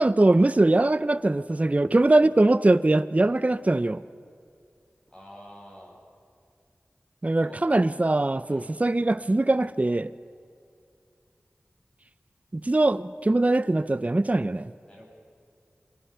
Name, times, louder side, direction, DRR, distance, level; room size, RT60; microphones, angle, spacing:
voice 1, 0.0-4.0 7.2-10.1 12.5-14.7, right 2 dB, 30° right, 13 dB, 0.5 m, -22 dB
voice 2, 5.1-6.0 7.4-7.6 8.5-8.7 14.9-15.1, equal, 20° left, -2 dB, 6.9 m, -47 dB
29.0 x 22.5 x 5.6 m, 2.4 s
wide cardioid pair, 45°, 4 cm